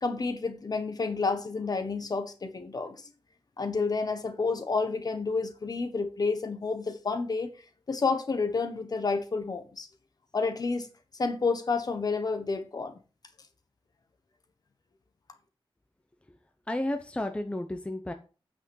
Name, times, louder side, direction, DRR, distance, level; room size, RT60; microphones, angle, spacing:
voice 1, 0.0-3.0 3.6-7.5 7.9-9.9 10.3-10.9 11.2-13.0, left 4 dB, 45° left, 1.4 m, -30 dB
voice 2, 16.7-18.1, left 1 dB, 10° left, 0.7 m, -32 dB
8.9 x 5.9 x 5.5 m
wide cardioid pair, 165°, 10 cm